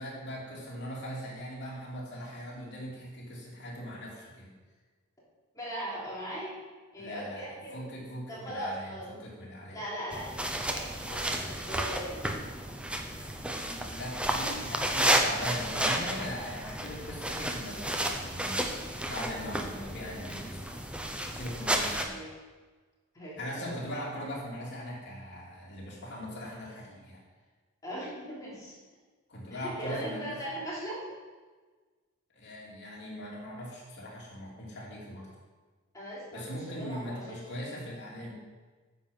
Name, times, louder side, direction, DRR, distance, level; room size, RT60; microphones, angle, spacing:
voice 1, 0.0-4.5 7.0-9.8 13.3-18.8 19.1-20.8 21.3-22.2 23.4-27.2 29.3-30.4 32.3-35.3 36.3-38.4, equal, 55° left, -4 dB, 3.0 m, -40 dB
voice 2, 5.5-6.5 6.9-7.8 8.3-9.1 9.7-10.3 10.7-12.4 22.1-22.3 23.1-23.7 27.8-28.8 29.5-31.0 35.9-36.4 36.8-37.3, right 1 dB, 15° left, -7 dB, 3.3 m, -39 dB
sound 1, 10.1-22.0, right 1 dB, 5° right, 0.8 m, -32 dB
9.7 x 7.6 x 5.5 m, 1.4 s
head